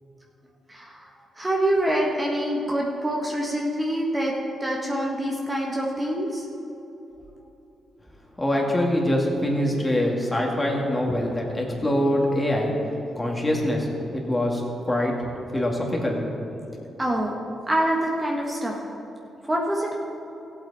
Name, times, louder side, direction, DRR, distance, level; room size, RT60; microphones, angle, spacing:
voice 1, 0.7-4.3 4.6-6.4 17.0-17.3 17.7-18.8 19.4-20.0, right 1 dB, 20° right, -2 dB, 1.6 m, -25 dB
voice 2, 8.4-12.7 13.2-16.2, left 1 dB, 15° left, -1 dB, 2.4 m, -24 dB
15.0 x 8.2 x 4.3 m, 3.0 s
cardioid pair, 65°, 0 cm